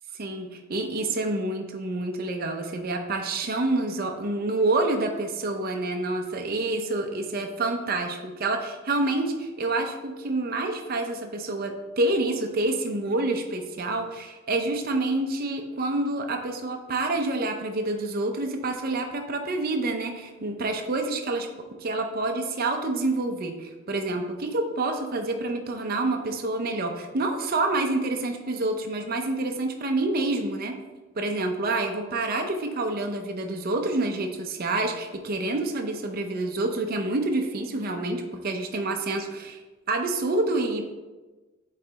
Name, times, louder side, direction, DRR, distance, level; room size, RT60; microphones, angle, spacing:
voice 1, 0.2-21.5 21.8-30.8 31.2-39.6 39.9-41.0, right 2 dB, 45° right, 4 dB, 0.6 m, -28 dB
8.1 x 3.2 x 3.9 m, 1.2 s
head